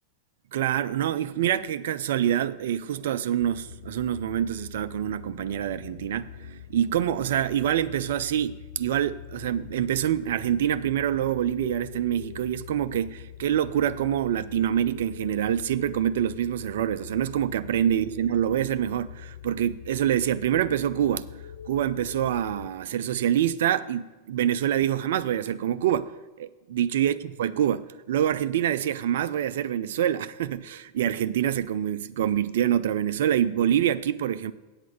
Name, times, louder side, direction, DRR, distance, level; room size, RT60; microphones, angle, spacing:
voice 1, 0.5-21.3 21.7-26.1 26.4-34.5, right 10 dB, 55° right, 0.3 m, -26 dB
sound 1, 3.4-22.7, left 10 dB, 60° left, 0.3 m, -43 dB
8.3 x 7.8 x 6.7 m
figure-of-eight pair, 90°, 0 cm